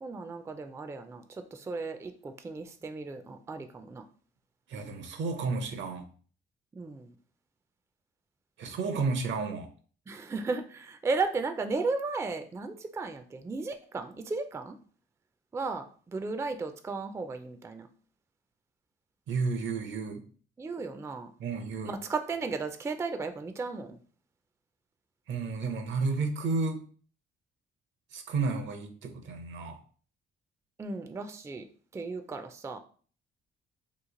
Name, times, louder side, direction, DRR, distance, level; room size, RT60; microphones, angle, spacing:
voice 1, 0.0-4.0 6.7-7.2 10.1-14.8 15.5-17.9 20.6-21.3 21.8-24.0 30.8-31.7 31.9-32.8, right 4 dB, 15° right, 0.3 m, -35 dB
voice 2, 4.7-6.1 8.6-9.7 19.3-20.2 21.4-21.9 25.3-26.8 28.1-29.8, right 4 dB, 70° right, 0.7 m, -32 dB
3.0 x 2.4 x 3.7 m
cardioid pair, 90°, 20 cm